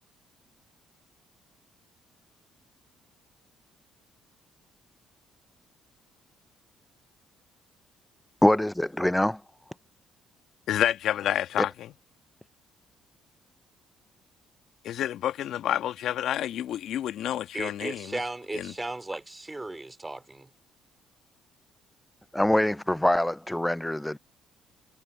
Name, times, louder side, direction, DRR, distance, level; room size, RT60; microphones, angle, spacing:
voice 1, 8.4-9.4 22.3-24.2, left 1 dB, 5° left, 0.4 m, -24 dB
voice 2, 10.7-11.7 14.8-18.2 18.5-18.7, left 11 dB, 70° left, 1.4 m, -29 dB
voice 3, 17.5-20.5, right 2 dB, 15° right, 3.7 m, -36 dB
hypercardioid pair, 60°, 0 cm